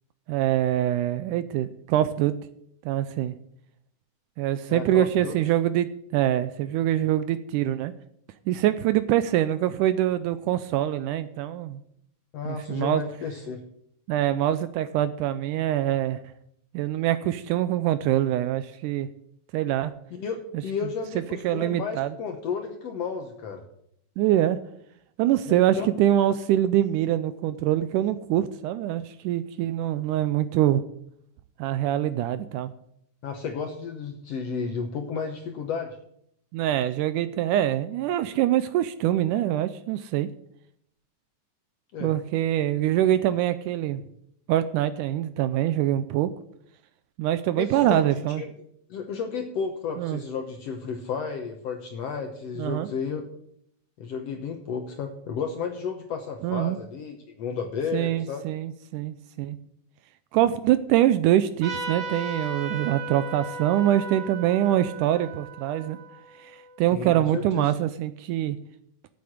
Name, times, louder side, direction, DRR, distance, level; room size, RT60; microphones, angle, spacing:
voice 1, 0.3-2.3 2.9-3.3 4.4-7.9 8.5-11.8 12.5-13.0 14.1-16.2 16.7-19.1 19.5-19.9 21.4-22.1 24.2-24.6 25.2-30.8 31.6-32.7 36.5-40.3 42.0-44.0 44.5-46.3 47.2-48.4 50.0-50.2 52.6-52.9 56.4-56.8 57.9-59.6 60.3-66.0 66.4-66.5 66.8-68.6, right 12 dB, 80° right, 13 dB, 1.9 m, -24 dB
voice 2, 4.7-5.4 12.3-13.6 20.1-20.4 20.6-23.6 25.5-25.9 33.2-36.0 41.9-42.1 47.6-48.5 48.9-53.2 54.0-58.5 66.9-67.7, left 6 dB, 70° left, 4 dB, 1.6 m, -32 dB
Trumpet, 61.6-66.7, right 3 dB, 35° right, 3.9 m, -36 dB
8.6 x 7.8 x 8.6 m, 0.72 s
omnidirectional pair, 3.9 m